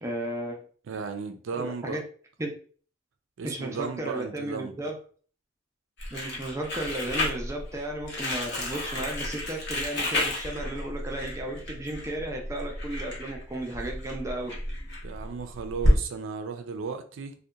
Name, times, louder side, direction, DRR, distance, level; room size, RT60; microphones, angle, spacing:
voice 1, 0.0-0.6 1.6-2.0 2.4-2.5 3.4-5.0 6.1-14.6, right 1 dB, 15° right, 0 dB, 0.4 m, -34 dB
voice 2, 0.9-2.0 3.4-4.7 15.0-17.3, right 5 dB, 80° right, 7 dB, 0.4 m, -35 dB
Crumpling crinkling, 6.0-16.0, left 1 dB, 60° left, 0.9 m, -30 dB
2.7 x 2.2 x 2.3 m, 0.44 s
head